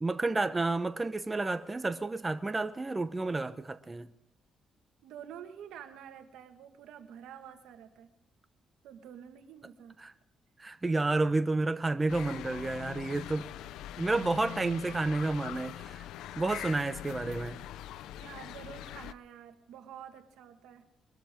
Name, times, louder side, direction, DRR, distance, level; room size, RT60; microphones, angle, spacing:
voice 1, 0.0-4.1 10.0-10.1 10.6-13.5 14.0-16.0 16.4-17.6, right 2 dB, 20° right, 0.9 m, -30 dB
voice 2, 5.0-8.1 8.8-9.9 18.2-20.8, right 9 dB, 85° right, 1.6 m, -48 dB
sound 1, 12.1-19.1, left 12 dB, 90° left, 0.5 m, -42 dB
23.5 x 13.5 x 3.7 m
cardioid pair, 90°, 0 cm